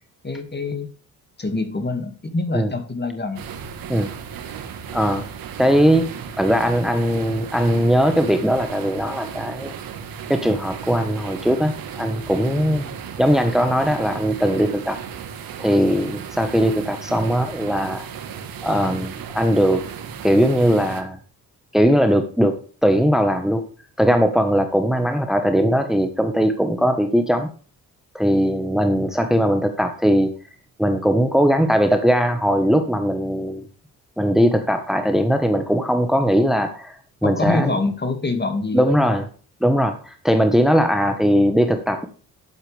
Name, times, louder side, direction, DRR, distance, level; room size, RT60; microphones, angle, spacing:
voice 1, 0.2-0.9 1.4-3.4 12.8-12.9 37.2-39.1, left 3 dB, 30° left, 8 dB, 2.2 m, -25 dB
sound 1, 3.4-21.0, right 7 dB, 75° right, 1.6 m, -35 dB
voice 2, 4.9-5.3 5.6-6.1 6.4-9.7 10.3-12.9 13.2-15.0 15.6-18.1 18.6-19.8 20.2-21.2 21.7-22.5 22.8-23.6 24.0-27.5 28.1-30.3 30.8-33.7 34.2-37.8 38.7-39.3 39.6-42.1, equal, ahead, 7 dB, 1.4 m, -19 dB
11.5 x 8.0 x 3.5 m, 0.39 s
supercardioid pair, 60°, 35 cm